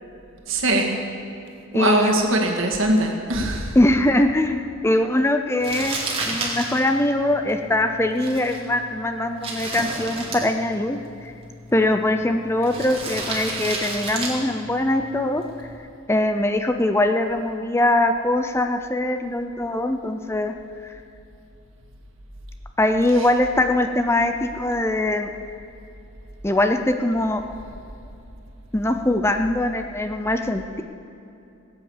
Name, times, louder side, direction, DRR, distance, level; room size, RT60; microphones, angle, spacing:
voice 1, 0.5-0.9 1.7-3.7, right 1 dB, 70° right, 1 dB, 2.1 m, -21 dB
voice 2, 1.7-2.2 3.8-6.0 6.3-11.3 11.7-15.7 16.1-20.5 22.8-25.3 26.4-27.4 28.7-30.8, left 1 dB, 10° left, 7 dB, 0.5 m, -22 dB
Crumpling crinkling, 5.6-15.8, right 2 dB, 25° right, 2.6 m, -33 dB
19.0 x 8.6 x 7.3 m, 2.8 s
head